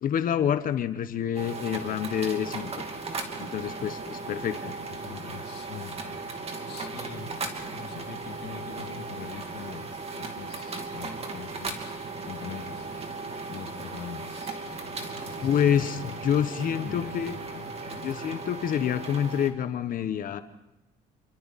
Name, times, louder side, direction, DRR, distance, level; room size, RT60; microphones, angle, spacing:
voice 1, 0.0-2.7 3.4-4.7 15.4-17.3 18.0-20.4, left 9 dB, 55° left, 11 dB, 1.2 m, -27 dB
sound 1, 1.3-19.5, right 3 dB, 35° right, 2.8 m, -37 dB
voice 2, 5.0-6.3 6.7-7.3 7.7-13.0 13.5-18.1, left 9 dB, 75° left, 5 dB, 2.1 m, -43 dB
28.0 x 24.0 x 4.3 m, 0.94 s
cardioid pair, 110°, 17 cm